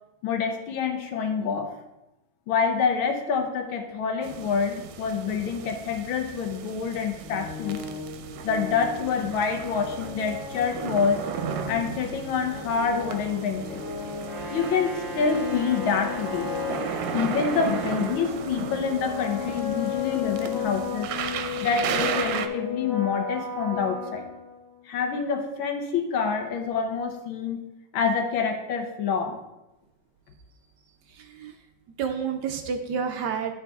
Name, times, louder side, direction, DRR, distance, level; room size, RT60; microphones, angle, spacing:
voice 1, 0.2-1.7 2.5-7.8 8.4-11.2 11.7-13.8 14.4-16.5 17.1-21.1 21.6-24.3 24.8-27.7 27.9-29.4, left 6 dB, 85° left, 5 dB, 1.7 m, -27 dB
sound 1, 4.2-22.5, right 8 dB, 85° right, 1.4 m, -36 dB
sound 2, 7.2-24.9, left 5 dB, 50° left, 1.3 m, -34 dB
Brass instrument, 14.2-18.2, right 4 dB, 55° right, 1.9 m, -38 dB
voice 2, 31.2-31.5 32.0-33.5, right 6 dB, 70° right, 5 dB, 1.1 m, -29 dB
11.0 x 4.0 x 3.5 m, 0.96 s
omnidirectional pair, 2.2 m